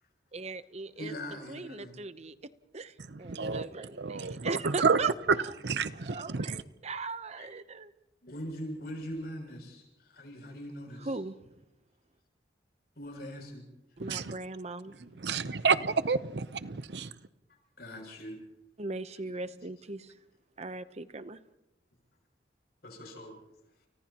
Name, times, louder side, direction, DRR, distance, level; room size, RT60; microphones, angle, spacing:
voice 1, 0.3-1.1 1.5-2.3 2.7-5.5 6.0-7.9 11.0-11.4 14.0-15.1 18.8-20.1 20.6-21.4, right 3 dB, 40° right, 0.8 m, -39 dB
voice 2, 1.0-1.9 3.1-3.2 7.4-7.5 8.2-11.2 13.0-13.7 15.1-15.2 17.8-18.4 22.8-23.3, equal, 65° left, 7.3 m, -42 dB
voice 3, 3.1-3.7 4.0-5.4 5.6-6.6 14.1-14.3 15.2-17.1, right 5 dB, 70° right, 0.8 m, -29 dB
30.0 x 30.0 x 3.0 m
head